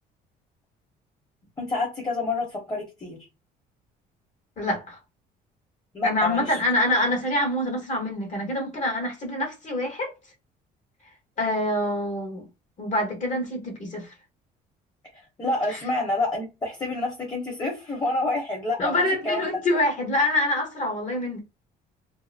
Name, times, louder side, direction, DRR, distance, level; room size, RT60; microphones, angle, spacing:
voice 1, 1.6-3.2 5.9-6.6 15.4-19.0 19.2-19.4, left 2 dB, 25° left, 1.0 m, -28 dB
voice 2, 4.6-5.0 6.0-10.1 11.4-12.4 12.8-14.1 15.7-15.8 18.8-21.4, left 1 dB, 45° left, 1.1 m, -26 dB
2.7 x 2.0 x 2.5 m
cardioid pair, 110°, 17 cm